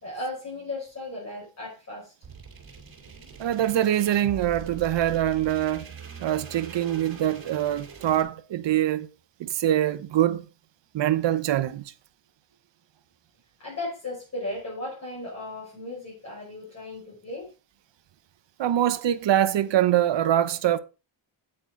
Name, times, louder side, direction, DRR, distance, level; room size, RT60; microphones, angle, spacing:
voice 1, 0.0-2.1 13.6-17.5, left 2 dB, 35° left, 5.8 m, -36 dB
sound 1, 2.2-8.2, right 6 dB, 50° right, 2.5 m, -42 dB
voice 2, 3.4-5.9 6.2-9.1 9.4-10.5 10.9-11.8 18.6-20.8, right 12 dB, 65° right, 0.9 m, -24 dB
8.9 x 8.7 x 3.8 m
wide cardioid pair, 150°, 46 cm